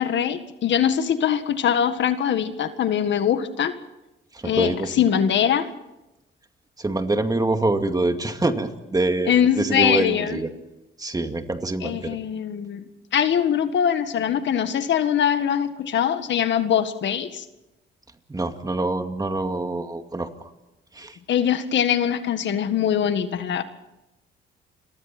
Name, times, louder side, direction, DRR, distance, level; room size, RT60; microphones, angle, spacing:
voice 1, 0.0-3.7 4.4-5.7 9.3-10.4 11.8-12.9 13.1-17.4 21.3-23.6, left 9 dB, 65° left, 10 dB, 1.8 m, -22 dB
voice 2, 4.4-4.9 6.8-10.5 11.0-12.2 18.3-20.3 21.0-21.2, right 2 dB, 20° right, 6 dB, 2.3 m, -25 dB
30.0 x 23.5 x 4.4 m, 0.96 s
cardioid pair, 90°, 20 cm